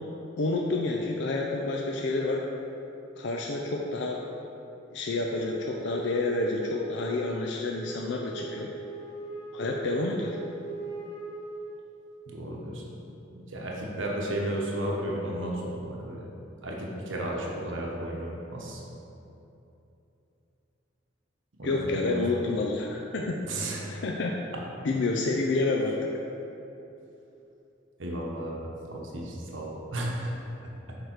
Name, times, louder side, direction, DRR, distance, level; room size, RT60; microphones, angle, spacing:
voice 1, 0.4-2.4 3.2-4.2 4.9-8.7 9.5-10.4 21.6-23.3 23.9-24.4 24.8-26.0, left 2 dB, 65° left, 0 dB, 0.5 m, -29 dB
Wind instrument woodwind instrument, 5.3-12.1, right 2 dB, 20° left, 1.0 m, -40 dB
voice 2, 12.3-12.8 13.3-16.3 16.6-18.8 21.6-22.2 23.4-24.0 24.5-24.6 28.0-30.3, right 1 dB, 75° right, -2 dB, 1.0 m, -33 dB
6.8 x 4.7 x 4.5 m, 2.9 s
head